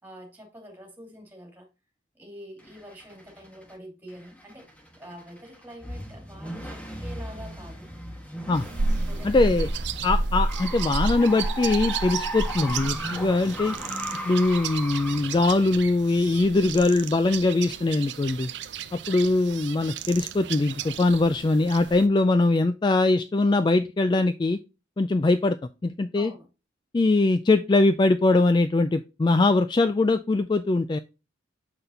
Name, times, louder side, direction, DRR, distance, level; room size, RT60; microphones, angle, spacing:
voice 1, 0.0-1.7 2.1-4.7 5.0-7.9 9.1-9.5 26.2-26.5, equal, 10° right, 2.5 m, -45 dB
sound 1, 2.6-3.7 4.1-16.7, equal, 5° left, 1.2 m, -37 dB
sound 2, 8.5-22.1, right 3 dB, 65° right, 0.6 m, -32 dB
voice 2, 9.2-9.7 10.0-13.7 14.3-18.5 19.1-24.6 25.0-25.6 25.8-26.3 26.9-31.0, left 2 dB, 25° left, 0.3 m, -22 dB
6.8 x 5.9 x 2.7 m
head